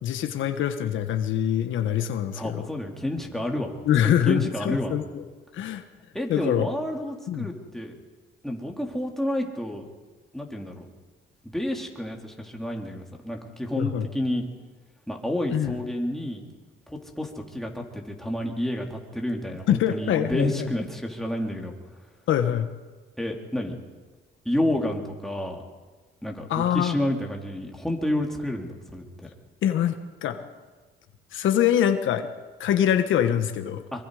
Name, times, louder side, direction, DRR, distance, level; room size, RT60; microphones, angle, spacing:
voice 1, 0.0-2.7 3.8-5.2 5.5-5.8 6.3-6.7 7.3-7.5 13.7-14.1 15.5-15.8 19.7-20.7 22.3-22.7 26.5-27.0 29.6-30.4 31.3-32.3 32.6-33.8, left 10 dB, 80° left, 7 dB, 1.4 m, -24 dB
voice 2, 2.3-3.8 4.0-4.9 6.1-7.9 8.4-9.9 10.3-10.9 11.4-14.5 15.1-16.4 16.9-21.8 23.2-23.7 24.5-25.6 26.2-29.3 33.9-34.1, left 1 dB, ahead, 0 dB, 3.5 m, -30 dB
24.0 x 24.0 x 5.0 m, 1.3 s
cardioid pair, 90°, 20 cm